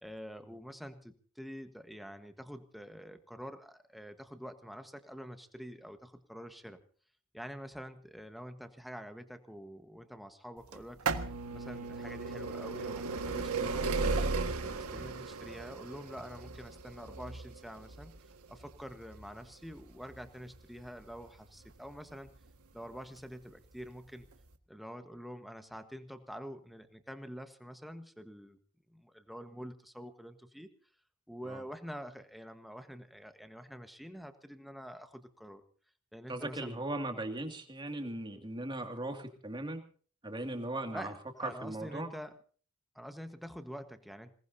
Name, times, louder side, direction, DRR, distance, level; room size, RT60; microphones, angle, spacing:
voice 1, 0.0-6.8 7.3-14.1 14.6-18.1 18.5-22.3 22.7-24.3 24.7-28.6 28.9-30.7 31.3-35.6 36.1-36.8 40.9-42.3 42.9-44.3, equal, ahead, 7 dB, 1.3 m, -47 dB
sound 1, 10.7-22.4 23.2-23.3 24.2-24.3 24.5-24.6, right 4 dB, 80° right, 1.7 m, -36 dB
voice 2, 36.3-39.8 40.2-41.1 41.4-42.1, right 2 dB, 20° right, 5 dB, 2.3 m, -38 dB
27.0 x 18.5 x 2.8 m, 0.43 s
head